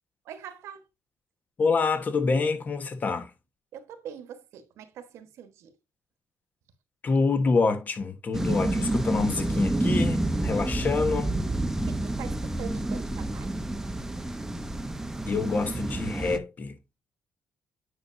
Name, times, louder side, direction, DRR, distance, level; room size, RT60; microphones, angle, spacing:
voice 1, 0.2-0.9 3.7-5.7 11.9-13.5, right 9 dB, 80° right, 1.3 m, -43 dB
voice 2, 1.6-3.3 7.0-11.5 15.3-16.7, left 4 dB, 35° left, 1.3 m, -26 dB
sound 1, 8.3-16.4, right 1 dB, 10° right, 0.8 m, -29 dB
8.9 x 5.7 x 2.7 m
cardioid pair, 110°, 5 cm